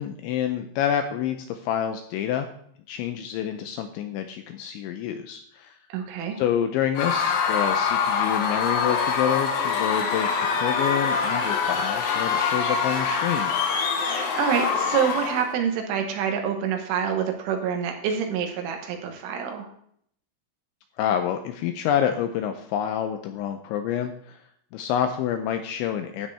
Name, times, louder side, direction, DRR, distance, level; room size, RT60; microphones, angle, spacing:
voice 1, 0.0-2.5 2.9-5.8 6.4-10.3 10.6-13.5 21.0-24.4 24.7-26.3, left 9 dB, 85° left, 7 dB, 2.7 m, -28 dB
voice 2, 5.9-6.4 14.0-19.7, right 7 dB, 75° right, 4 dB, 3.6 m, -27 dB
Screaming / Cheering / Crowd, 7.0-15.5, left 5 dB, 70° left, 2.3 m, -24 dB
12.5 x 9.0 x 3.4 m, 0.66 s
omnidirectional pair, 5.9 m